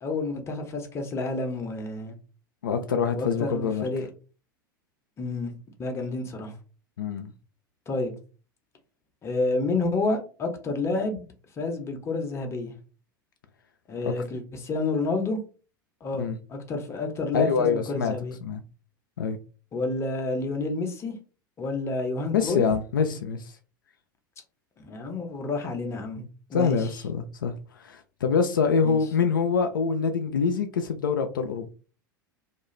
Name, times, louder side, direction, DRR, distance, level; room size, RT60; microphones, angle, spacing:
voice 1, 0.0-2.1 3.1-4.1 5.2-5.5 5.8-6.5 7.9-8.1 9.2-11.2 11.6-12.7 13.9-15.4 16.0-18.4 19.7-21.1 21.6-22.7 24.8-26.9 28.8-29.0, left 3 dB, 25° left, 0.7 m, -29 dB
voice 2, 2.6-3.9 7.0-7.3 16.2-16.4 17.3-18.2 18.4-18.6 19.2-19.4 22.3-23.5 26.5-27.5 27.8-31.7, left 6 dB, 70° left, 0.4 m, -25 dB
2.4 x 2.2 x 3.1 m
figure-of-eight pair, 80°, 11 cm